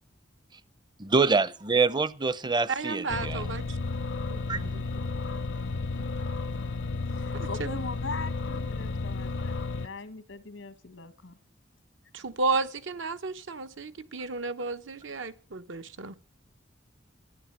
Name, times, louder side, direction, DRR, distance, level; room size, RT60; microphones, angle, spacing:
voice 1, 1.0-3.4 4.5-4.6, right 4 dB, 25° right, 0.6 m, -25 dB
voice 2, 2.7-3.8 4.3-4.8 7.3-7.7 12.1-16.2, right 4 dB, 75° right, 1.0 m, -33 dB
sound 1, 3.1-9.9, left 3 dB, 65° left, 0.8 m, -32 dB
voice 3, 7.2-11.4, left 3 dB, 90° left, 1.5 m, -40 dB
13.5 x 10.5 x 7.7 m
head